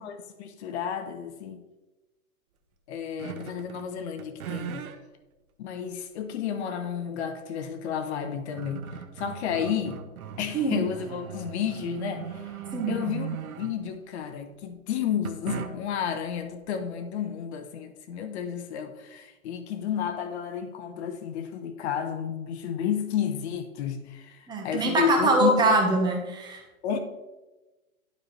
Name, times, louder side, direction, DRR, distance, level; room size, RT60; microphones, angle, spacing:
voice 1, 0.0-1.6 2.9-4.9 5.6-8.9 9.2-10.0 10.4-12.6 12.9-13.3 13.6-25.6 26.8-27.0, left 8 dB, 50° left, 7 dB, 0.9 m, -31 dB
sound 1, 3.2-3.9 4.2-5.0 5.7-5.8 7.8-7.9 8.2-14.0 15.2-16.0, right 8 dB, 80° right, 1.0 m, -38 dB
voice 2, 10.5-10.8 12.7-12.9 24.5-26.6, right 2 dB, 10° right, 0 dB, 1.1 m, -23 dB
12.0 x 4.4 x 3.2 m, 1.1 s
hypercardioid pair, 145°, 42 cm